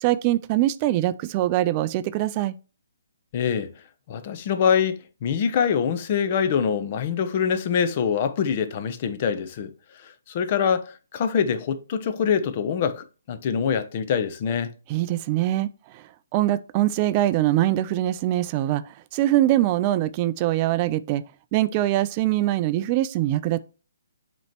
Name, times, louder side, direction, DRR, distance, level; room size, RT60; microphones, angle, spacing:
voice 1, 0.0-2.5 14.9-21.2 21.5-23.6, right 14 dB, 30° right, 0.3 m, -23 dB
voice 2, 3.3-3.7 4.1-14.7, left 7 dB, 40° left, 0.7 m, -24 dB
7.7 x 3.0 x 4.4 m
figure-of-eight pair, 140°, 0 cm